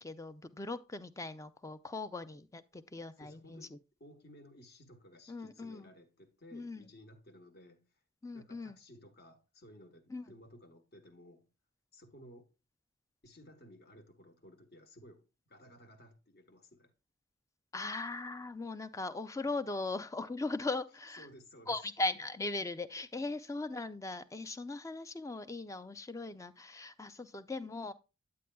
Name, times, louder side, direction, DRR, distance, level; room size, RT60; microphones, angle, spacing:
voice 1, 0.0-3.7 5.3-5.9 6.5-6.9 8.2-8.8 10.1-10.2 17.7-21.3 21.7-27.9, left 2 dB, 15° left, 0.4 m, -39 dB
voice 2, 3.2-3.7 4.0-7.9 8.3-11.5 11.9-12.5 13.2-16.9 21.2-21.8, equal, 50° left, 1.2 m, -56 dB
9.7 x 8.5 x 2.2 m
head